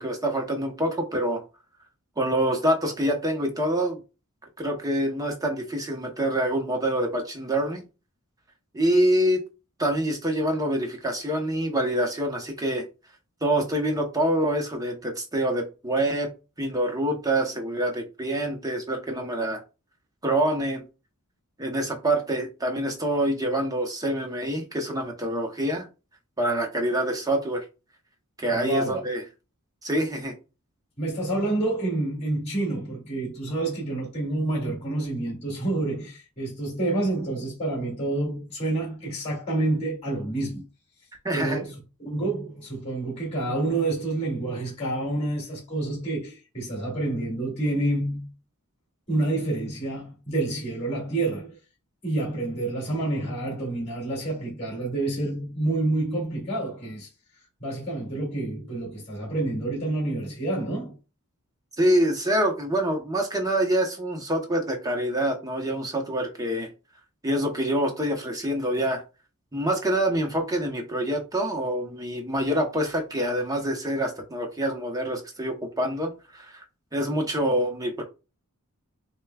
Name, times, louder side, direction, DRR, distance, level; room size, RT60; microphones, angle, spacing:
voice 1, 0.0-1.4 2.2-4.0 4.6-7.8 8.7-9.4 9.8-12.9 13.4-16.3 16.6-19.6 20.2-20.8 21.6-25.9 26.4-27.6 28.4-29.2 29.8-30.3 41.2-41.6 61.8-66.7 67.2-69.0 69.5-76.6 76.9-78.0, right 1 dB, 15° right, 0.8 m, -26 dB
voice 2, 28.5-29.0 31.0-40.6 41.3-41.8 42.0-48.3 49.1-51.6 52.0-57.1 57.6-60.9, right 2 dB, 30° left, 2.2 m, -28 dB
6.7 x 2.2 x 2.3 m
head